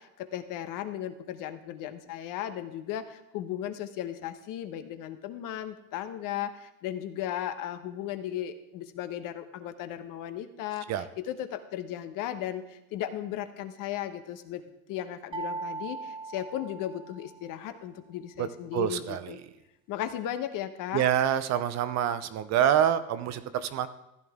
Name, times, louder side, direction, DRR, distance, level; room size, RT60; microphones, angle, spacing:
voice 1, 0.0-14.6 14.9-19.4 19.9-21.1, left 11 dB, 50° left, 9 dB, 1.1 m, -36 dB
sound 1, 15.3-17.5, right 3 dB, 10° right, 1.1 m, -38 dB
voice 2, 18.4-19.3 20.9-23.9, right 10 dB, 40° right, 12 dB, 0.7 m, -27 dB
14.5 x 9.9 x 3.6 m, 0.90 s
supercardioid pair, 115°, 42 cm